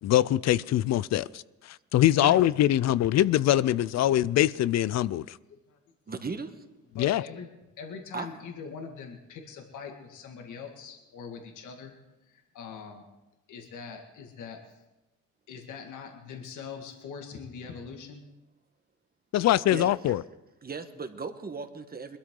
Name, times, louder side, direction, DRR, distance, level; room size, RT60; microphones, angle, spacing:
voice 1, 0.0-5.4 7.0-7.2 19.3-20.2, left 13 dB, 60° left, 0.5 m, -23 dB
voice 2, 6.1-6.5 8.1-8.3 19.7-19.9 20.6-22.2, right 4 dB, 30° right, 1.3 m, -36 dB
voice 3, 6.9-7.5 7.8-11.9 12.2-13.0 13.5-14.8 15.5-18.2, left 6 dB, 80° left, 1.9 m, -42 dB
22.0 x 12.5 x 3.8 m
cardioid pair, 90°, 30 cm